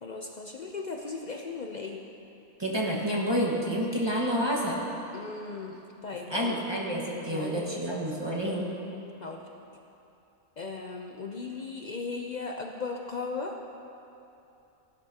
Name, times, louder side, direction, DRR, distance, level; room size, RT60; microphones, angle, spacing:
voice 1, 0.0-2.0 5.1-6.6 7.3-8.0 9.2-9.5 10.6-13.5, left 4 dB, 90° left, 1 dB, 0.3 m, -37 dB
voice 2, 2.6-4.8 6.3-8.7, equal, 20° right, -3 dB, 1.4 m, -29 dB
16.5 x 11.5 x 2.9 m, 2.8 s
omnidirectional pair, 1.6 m